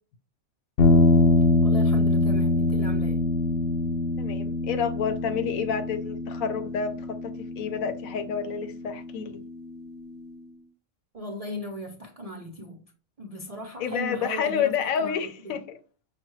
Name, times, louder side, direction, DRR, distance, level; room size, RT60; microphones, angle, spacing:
sound 1, 0.8-9.1, left 2 dB, 60° left, 0.6 m, -24 dB
voice 1, 1.6-3.2 11.1-12.8 13.2-15.2 15.4-15.6, left 1 dB, 60° right, 0.3 m, -37 dB
voice 2, 4.2-9.4 13.8-15.6, left 7 dB, 75° left, 1.0 m, -29 dB
5.7 x 2.2 x 3.0 m
omnidirectional pair, 1.5 m